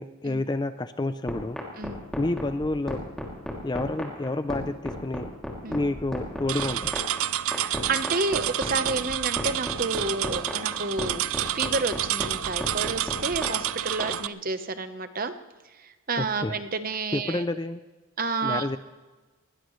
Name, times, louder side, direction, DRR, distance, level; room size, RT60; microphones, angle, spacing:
voice 1, 0.0-1.6 2.2-3.0 3.6-5.3 5.7-7.0 16.2-16.6 17.1-17.8 18.4-18.8, left 2 dB, 20° left, 11 dB, 0.4 m, -29 dB
sound 1, 1.3-14.1, equal, 5° left, 2.6 m, -33 dB
sound 2, 6.5-14.3, right 12 dB, 70° right, 0.5 m, -29 dB
voice 2, 7.5-11.2 11.5-15.3 15.8-17.4 18.2-18.7, right 3 dB, 40° right, 10 dB, 0.9 m, -30 dB
20.5 x 19.0 x 3.2 m, 1.3 s
head